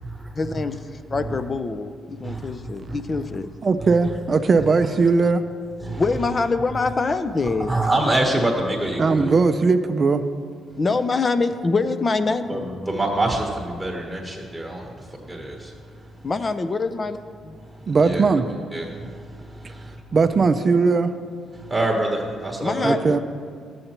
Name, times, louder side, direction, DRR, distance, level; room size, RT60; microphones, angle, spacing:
voice 1, 0.4-0.7 1.1-3.5 6.0-7.8 10.8-12.8 16.2-17.2 17.4-17.6 22.6-23.2, left 3 dB, 35° left, 11 dB, 0.5 m, -24 dB
voice 2, 3.6-5.4 9.0-10.2 17.9-18.5 20.1-21.1 22.8-23.2, right 4 dB, 40° right, 9 dB, 0.4 m, -19 dB
voice 3, 7.7-9.3 12.5-15.0 15.3-15.5 17.9-18.2 18.7-19.9 21.6-23.0, right 1 dB, 10° right, -1 dB, 1.1 m, -25 dB
13.0 x 7.8 x 2.9 m, 2.1 s
cardioid pair, 90°, 0 cm